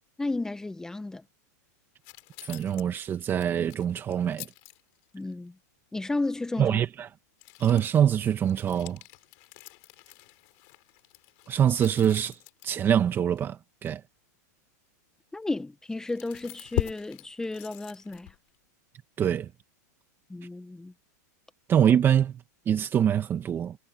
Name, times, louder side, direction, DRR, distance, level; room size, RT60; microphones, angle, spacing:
voice 1, 0.2-1.2 5.1-5.5 5.9-6.8 15.3-18.3 20.3-20.9, left 2 dB, 5° left, 1.6 m, -33 dB
sound 1, 2.0-5.3 7.4-12.9 13.4-13.5 13.9-14.0 15.4-15.5 15.9-18.6, left 34 dB, 50° left, 5.8 m, -41 dB
voice 2, 2.4-4.5 6.6-7.1 7.6-9.0 11.5-12.4 12.6-14.0 19.2-19.5 21.7-22.3 22.7-23.8, right 9 dB, 25° right, 1.9 m, -24 dB
supercardioid pair, 135°, 9 cm